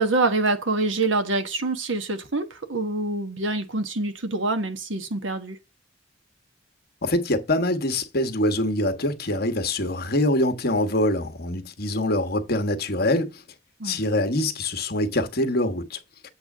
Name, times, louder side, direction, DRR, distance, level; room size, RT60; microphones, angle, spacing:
voice 1, 0.0-5.6 13.8-14.0, right 2 dB, 85° right, 1.4 m, -25 dB
voice 2, 7.0-13.4 13.8-16.3, left 1 dB, 55° left, 1.4 m, -24 dB
8.1 x 3.4 x 6.1 m
head